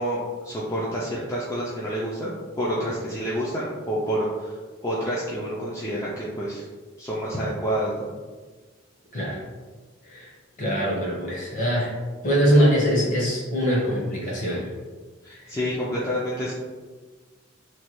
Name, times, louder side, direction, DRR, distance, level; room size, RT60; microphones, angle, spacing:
voice 1, 0.0-4.5 4.8-6.6 7.0-8.1 15.2-16.5, equal, 15° left, -7 dB, 0.3 m, -28 dB
voice 2, 10.6-11.9 12.2-14.7 15.4-15.6, equal, 40° left, -4 dB, 0.8 m, -23 dB
3.1 x 2.2 x 2.9 m, 1.4 s
head